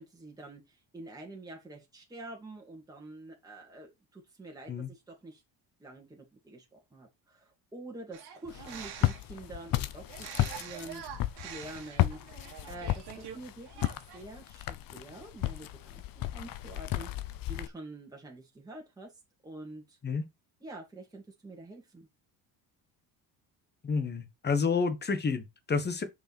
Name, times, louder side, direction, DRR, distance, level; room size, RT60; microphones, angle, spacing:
voice 1, 0.0-5.4 5.8-11.0 11.4-12.2 12.7-17.1 17.5-19.1 19.4-20.0 20.6-22.1, right 2 dB, 10° right, 2.4 m, -47 dB
sound 1, 8.1-9.4 10.1-13.4 13.6-14.2, right 9 dB, 65° right, 1.9 m, -45 dB
Walk footsteps, 8.5-17.7, left 14 dB, 55° left, 0.8 m, -34 dB
voice 2, 23.8-26.0, left 5 dB, 25° left, 1.4 m, -29 dB
6.2 x 5.3 x 4.4 m
cardioid pair, 125°, 41 cm